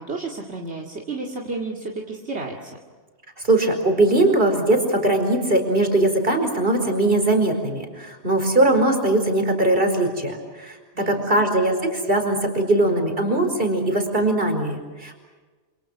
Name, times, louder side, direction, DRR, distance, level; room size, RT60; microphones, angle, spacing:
voice 1, 0.0-2.8 10.9-11.4, right 3 dB, 75° right, -1 dB, 2.6 m, -32 dB
voice 2, 3.4-15.1, right 2 dB, 55° right, 4 dB, 5.0 m, -20 dB
28.5 x 27.5 x 6.3 m, 1.4 s
omnidirectional pair, 1.1 m